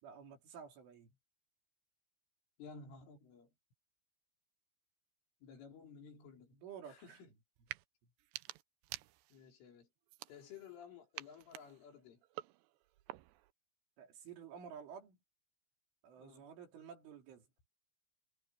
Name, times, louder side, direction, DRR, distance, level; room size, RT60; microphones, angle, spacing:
voice 1, 0.0-1.2 6.5-7.2 14.0-15.2 16.0-17.5, right 7 dB, 70° right, 6.1 m, -52 dB
voice 2, 2.6-3.5 5.4-6.6 6.9-7.3 9.3-9.9 10.3-12.2 16.2-16.5, left 6 dB, 70° left, 6.9 m, -54 dB
sound 1, 7.6-7.9 8.2-9.5 10.1-10.8 11.2-13.5, right 17 dB, 90° right, 2.4 m, -50 dB
omnidirectional pair, 5.8 m